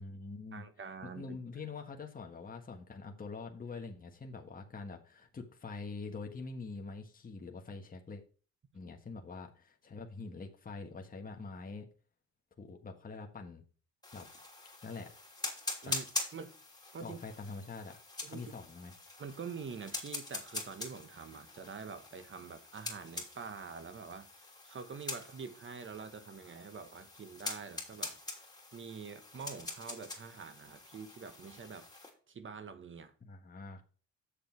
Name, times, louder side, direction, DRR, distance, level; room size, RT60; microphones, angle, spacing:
voice 1, 0.0-0.7 1.0-8.2 8.7-11.9 12.6-13.6 14.1-14.3 14.8-15.1 15.8-15.9 17.0-18.0 18.3-18.9 33.2-33.8, left 4 dB, 30° left, 1.5 m, -45 dB
voice 2, 0.5-1.4 15.8-16.0 16.3-16.5 16.9-17.2 18.2-18.5 19.2-28.2 28.7-31.9 32.3-33.1, right 5 dB, 40° right, 1.4 m, -46 dB
sound 1, 14.0-32.1, left 2 dB, 15° left, 3.0 m, -44 dB
7.7 x 6.7 x 4.6 m
cardioid pair, 90°, 30 cm